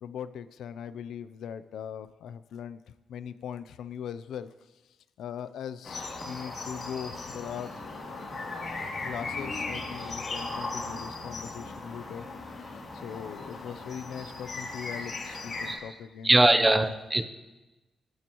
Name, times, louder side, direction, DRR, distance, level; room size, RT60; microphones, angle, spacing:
voice 1, 0.0-4.7 5.2-7.8 9.0-12.3 12.6-16.7, left 8 dB, 85° left, 13 dB, 0.6 m, -40 dB
sound 1, 5.8-15.7, left 3 dB, 45° left, 3.1 m, -37 dB
voice 2, 16.2-17.2, right 2 dB, 10° right, 8 dB, 0.7 m, -21 dB
27.5 x 13.0 x 3.1 m, 1.1 s
wide cardioid pair, 165°, 0 cm